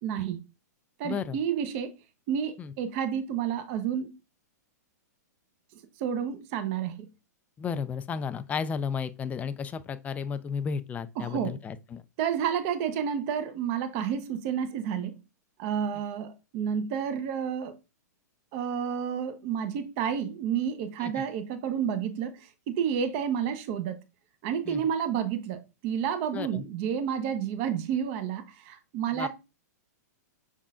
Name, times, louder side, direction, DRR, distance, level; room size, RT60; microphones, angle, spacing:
voice 1, 0.0-0.4 1.0-1.9 2.3-4.2 6.0-7.0 11.2-11.5 12.2-15.1 15.6-17.8 18.5-24.0 24.4-29.3, right 8 dB, 45° right, 0.7 m, -30 dB
voice 2, 1.0-1.4 2.6-2.7 7.6-12.0 21.0-21.2 24.7-24.8 26.3-26.6 29.1-29.3, left 6 dB, 15° left, 0.3 m, -33 dB
5.4 x 3.6 x 2.4 m
hypercardioid pair, 120°, 9 cm